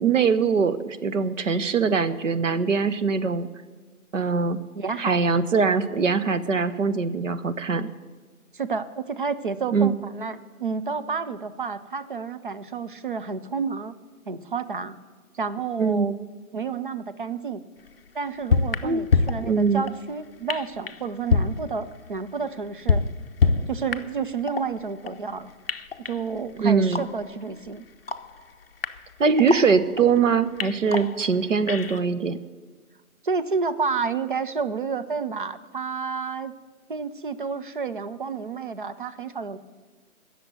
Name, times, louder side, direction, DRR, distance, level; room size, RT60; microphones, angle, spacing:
voice 1, 0.0-3.5 4.1-4.6 5.0-7.9 9.7-9.9 15.8-16.2 18.8-19.0 19.4-19.8 26.6-27.0 29.2-32.4, right 5 dB, 55° right, 12 dB, 0.9 m, -22 dB
voice 2, 4.7-5.2 8.5-13.9 14.3-15.0 15.3-16.1 16.5-17.6 18.1-23.1 23.7-25.5 26.0-27.9 33.2-36.5 36.9-39.6, right 5 dB, 35° right, 13 dB, 0.6 m, -30 dB
sound 1, 17.9-18.0 18.5-20.0 20.5-21.0 21.3-22.3 22.6-24.2 24.5-25.3 25.7-27.3 27.7-27.8 28.1-30.2 30.6-32.0, left 5 dB, 40° left, 0.6 m, -27 dB
16.5 x 6.9 x 7.6 m, 1.4 s
figure-of-eight pair, 150°, 44 cm